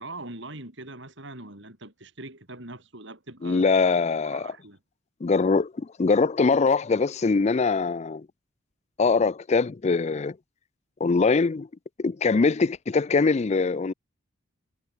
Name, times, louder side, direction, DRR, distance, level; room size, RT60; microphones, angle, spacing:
voice 1, 0.0-3.8 4.2-4.8, right 2 dB, 60° right, 6.2 m, -42 dB
voice 2, 3.4-4.5 5.2-8.3 9.0-10.4 11.0-11.7 12.0-13.9, left 4 dB, 35° left, 0.4 m, -22 dB
head